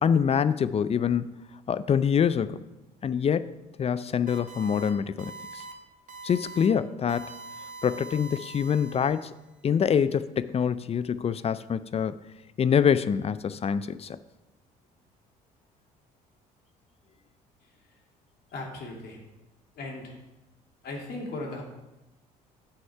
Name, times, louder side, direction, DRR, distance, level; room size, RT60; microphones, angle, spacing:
voice 1, 0.0-1.4 1.7-2.6 3.0-3.5 3.8-5.6 6.2-7.3 7.8-9.3 9.6-12.2 12.6-14.2, left 7 dB, 35° left, 16 dB, 0.4 m, -25 dB
sound 1, 4.3-4.9 5.2-5.7 6.1-6.7 7.1-9.4, right 4 dB, 45° right, 1.5 m, -43 dB
voice 2, 18.5-19.2 19.8-20.2 20.8-21.6, left 2 dB, 60° left, -1 dB, 2.3 m, -37 dB
7.8 x 5.6 x 5.7 m, 1.0 s
hypercardioid pair, 65°, 19 cm